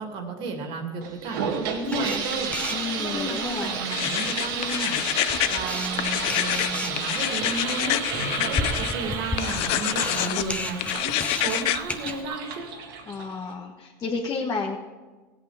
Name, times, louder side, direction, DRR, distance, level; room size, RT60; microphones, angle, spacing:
voice 1, 0.0-12.7, right 2 dB, 60° right, 3 dB, 2.4 m, -33 dB
sound 1, 1.0-13.5, right 6 dB, 80° right, 1.9 m, -32 dB
Camera, 1.8-12.2, left 2 dB, 10° left, 0.9 m, -35 dB
voice 2, 2.7-3.8 13.1-14.8, left 4 dB, 35° left, 0 dB, 1.4 m, -31 dB
sound 2, 3.9-5.6 5.9-8.9 9.4-10.5 10.8-11.8, left 15 dB, 60° left, 0.5 m, -27 dB
16.5 x 8.3 x 5.0 m, 1.3 s
supercardioid pair, 115°, 11 cm